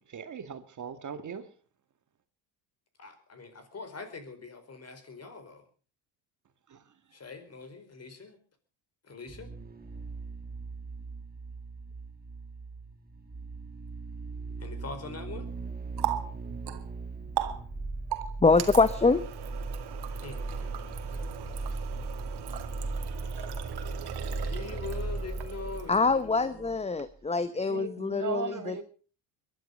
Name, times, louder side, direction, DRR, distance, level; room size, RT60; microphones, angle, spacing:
voice 1, 0.1-1.5 6.7-6.8 27.7-28.8, right 6 dB, 40° right, 10 dB, 1.7 m, -37 dB
voice 2, 3.0-5.6 7.1-8.4 9.0-9.5 14.6-15.5 20.2-21.3 24.4-27.0, left 4 dB, 30° left, 10 dB, 4.7 m, -43 dB
sound 1, 9.3-26.8 27.1-27.2, right 3 dB, 20° right, 2.0 m, -38 dB
Water tap faucet, 15.5-26.3, right 11 dB, 55° right, 2.3 m, -39 dB
voice 3, 18.4-19.2 23.3-23.5 25.9-28.8, left 4 dB, 15° left, 14 dB, 0.8 m, -25 dB
22.0 x 11.5 x 5.3 m, 0.39 s
supercardioid pair, 80°, 47 cm